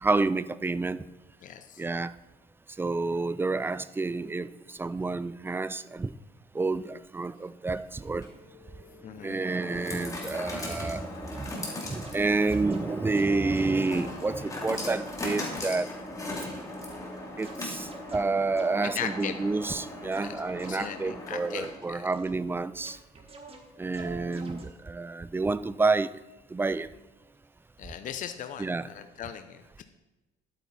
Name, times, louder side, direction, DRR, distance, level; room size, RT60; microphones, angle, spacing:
voice 1, 0.0-1.0 1.8-2.1 2.8-6.1 6.5-8.3 9.2-15.9 17.4-23.0 23.8-26.1 26.5-26.9 28.6-28.9, right 3 dB, 15° right, 16 dB, 0.4 m, -29 dB
voice 2, 1.4-1.8 9.0-9.4 18.8-19.4 20.2-22.1 27.8-29.8, left 9 dB, 50° left, 8 dB, 0.7 m, -38 dB
sound 1, 8.0-22.0, left 2 dB, 20° left, 2.7 m, -39 dB
sound 2, 11.3-11.6 12.0-15.7 16.8-21.2 22.1-22.6 22.8-24.6, right 3 dB, 35° right, 1.9 m, -46 dB
11.0 x 8.9 x 4.1 m, 1.1 s
cardioid pair, 110°, 17 cm